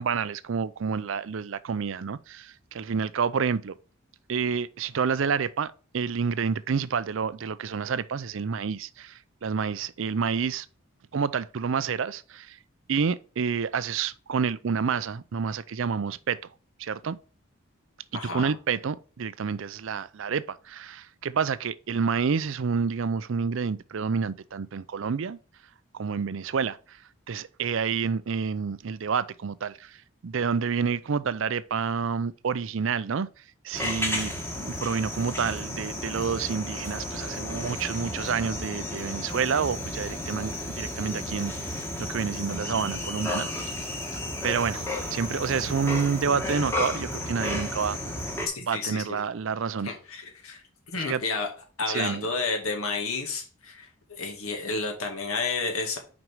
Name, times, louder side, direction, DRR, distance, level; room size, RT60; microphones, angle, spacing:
voice 1, 0.0-3.7 4.3-10.7 11.1-12.6 12.9-16.4 16.8-17.2 18.1-25.4 25.9-34.3 34.6-43.9 44.4-48.0 48.6-49.9 51.0-51.2 51.9-52.3, right 6 dB, 60° right, 0.4 m, -29 dB
voice 2, 18.1-18.5 48.5-49.2 49.8-50.6 50.9-51.5 51.8-56.0, left 4 dB, 80° left, 2.1 m, -31 dB
sound 1, 33.7-48.5, left 1 dB, 10° left, 1.3 m, -33 dB
6.1 x 5.2 x 4.5 m
head